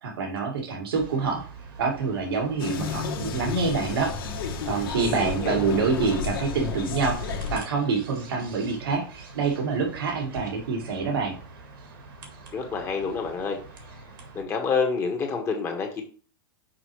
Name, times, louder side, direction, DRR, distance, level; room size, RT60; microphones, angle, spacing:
voice 1, 0.0-1.4 1.8-4.1 4.7-11.4, right 4 dB, 85° right, 0 dB, 2.1 m, -26 dB
sound 1, 0.9-14.4, right 3 dB, 70° right, 1.9 m, -45 dB
sound 2, 2.6-7.6, left 5 dB, 75° left, 1.5 m, -31 dB
voice 2, 5.0-5.6 12.5-13.6 14.3-16.0, left 5 dB, 20° left, 3 dB, 1.3 m, -28 dB
6.2 x 4.9 x 3.1 m, 0.37 s
supercardioid pair, 145°, 12 cm